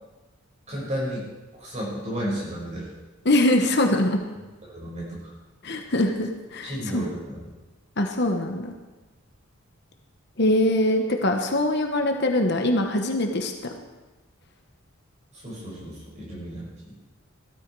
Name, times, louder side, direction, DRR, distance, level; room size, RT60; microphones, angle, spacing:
voice 1, 0.7-1.2 1.6-2.9 4.7-5.3 6.6-7.4 15.3-16.9, equal, 30° right, -4 dB, 5.9 m, -33 dB
voice 2, 3.2-4.2 5.6-7.1 8.0-8.7 10.4-13.7, left 1 dB, 50° left, 4 dB, 1.2 m, -23 dB
16.5 x 13.5 x 4.8 m, 1.2 s
head